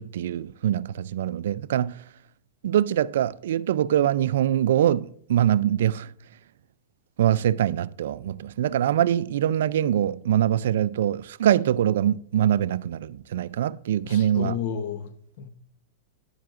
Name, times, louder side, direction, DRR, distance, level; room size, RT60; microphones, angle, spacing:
voice 1, 0.0-2.0 2.6-6.1 7.2-14.6, right 11 dB, 75° right, 0.3 m, -23 dB
voice 2, 14.0-15.5, left 8 dB, 60° left, 0.9 m, -32 dB
10.0 x 7.5 x 2.5 m
hypercardioid pair, 140°, 0 cm